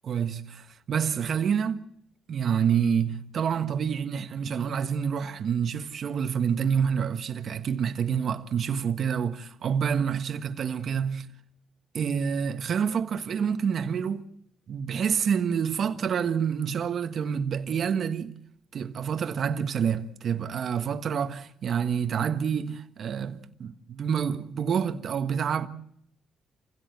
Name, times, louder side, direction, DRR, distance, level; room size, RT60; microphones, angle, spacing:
voice 1, 0.0-1.9 2.3-11.3 11.9-14.3 14.7-18.3 18.7-25.7, right 7 dB, 55° right, 1.4 m, -28 dB
27.5 x 16.5 x 8.2 m
cardioid pair, 90°, 0 cm